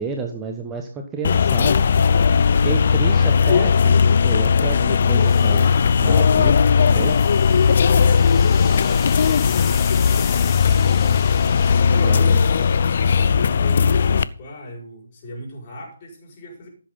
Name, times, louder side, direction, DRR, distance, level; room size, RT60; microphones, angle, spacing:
voice 1, 0.0-1.8 2.6-3.9 4.2-5.6 6.0-7.2 12.0-12.4, right 5 dB, 15° right, 4 dB, 1.1 m, -30 dB
sound 1, 1.2-14.2, left 6 dB, 50° left, 0.5 m, -17 dB
sound 2, 4.8-13.5, left 9 dB, 15° left, 1.1 m, -38 dB
voice 2, 7.9-11.2 11.7-16.7, left 1 dB, 30° left, -2 dB, 5.4 m, -37 dB
14.5 x 7.6 x 3.8 m, 0.41 s
figure-of-eight pair, 145°, 0 cm